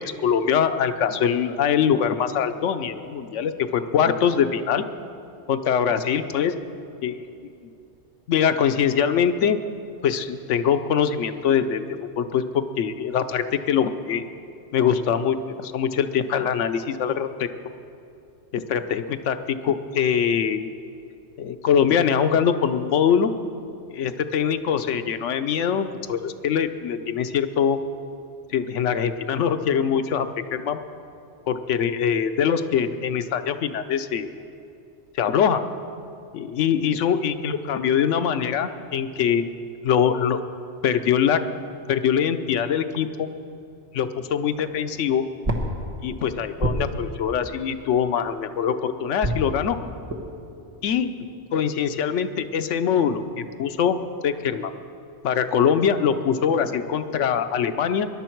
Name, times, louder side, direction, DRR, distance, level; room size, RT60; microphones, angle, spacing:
voice 1, 0.0-4.8 5.5-6.5 7.0-7.2 8.3-9.6 10.0-11.8 12.2-14.2 14.7-17.5 18.5-20.7 21.4-23.3 23.9-27.8 28.5-30.8 31.5-34.3 35.1-35.6 36.3-39.5 39.8-40.4 40.8-41.4 41.9-43.3 43.9-45.2 46.0-49.8 50.8-51.1 51.5-54.0 54.2-54.7 55.2-58.1, left 8 dB, 80° left, 10 dB, 1.0 m, -23 dB
sound 1, 44.5-48.6 49.2-52.2, equal, 30° right, 1.3 m, -32 dB
20.5 x 11.5 x 4.5 m, 2.6 s
omnidirectional pair, 1.2 m